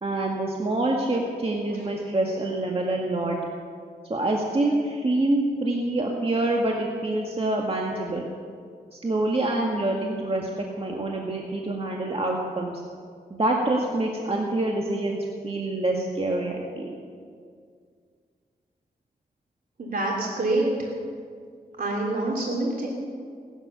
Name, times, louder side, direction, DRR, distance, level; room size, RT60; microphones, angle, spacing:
voice 1, 0.0-3.4 4.1-8.3 8.9-12.7 13.3-16.9, right 2 dB, 35° right, -1 dB, 1.8 m, -26 dB
voice 2, 19.8-20.9 21.8-22.9, right 2 dB, 60° right, -2 dB, 3.1 m, -26 dB
18.0 x 11.5 x 6.9 m, 2.1 s
cardioid pair, 70°, 17 cm